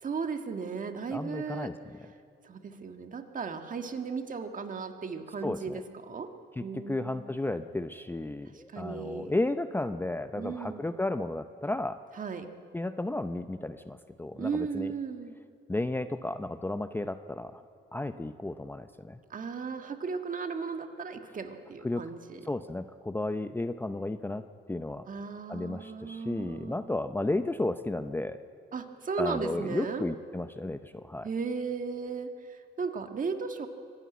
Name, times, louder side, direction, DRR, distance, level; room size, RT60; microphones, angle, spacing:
voice 1, 0.0-1.7 2.4-6.3 6.6-7.2 8.5-9.3 10.4-10.8 12.1-12.5 14.4-15.3 19.3-22.5 25.1-26.8 28.7-30.1 31.2-33.7, right 5 dB, 40° right, 6 dB, 1.6 m, -36 dB
voice 2, 1.1-1.7 5.4-5.8 6.6-12.0 12.7-14.9 15.7-17.6 17.9-19.2 21.8-22.0 22.5-24.4 24.7-25.1 25.5-28.4 29.2-31.3, left 2 dB, 10° left, 10 dB, 0.6 m, -33 dB
24.5 x 12.0 x 9.4 m, 2.3 s
cardioid pair, 90°, 20 cm